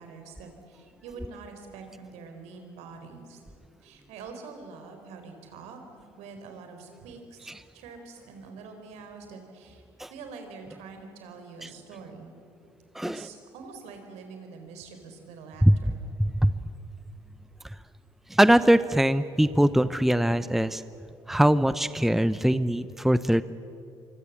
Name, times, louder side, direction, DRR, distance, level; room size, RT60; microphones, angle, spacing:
voice 1, 0.0-3.4 3.8-12.4 13.0-16.0, right 4 dB, 70° right, 5 dB, 4.2 m, -45 dB
voice 2, 12.9-13.3 15.6-16.6 17.6-17.8 18.3-20.8 21.3-23.4, right 1 dB, ahead, 15 dB, 0.8 m, -22 dB
25.5 x 25.5 x 7.4 m, 2.6 s
hypercardioid pair, 55°, 12 cm